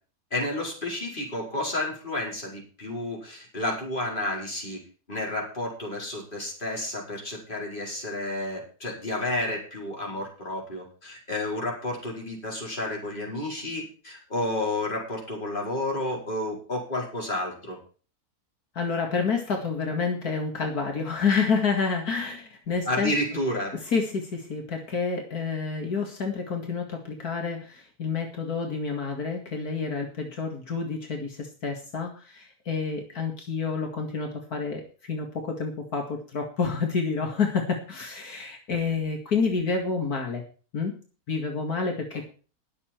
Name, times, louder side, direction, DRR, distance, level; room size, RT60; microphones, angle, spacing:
voice 1, 0.3-4.8 5.1-17.8 22.9-23.8, left 1 dB, 30° left, -2 dB, 5.1 m, -31 dB
voice 2, 18.8-23.1 23.8-40.4 40.7-40.9 41.3-42.2, left 5 dB, 75° left, 2 dB, 2.6 m, -29 dB
21.0 x 7.1 x 4.6 m, 0.38 s
omnidirectional pair, 1.6 m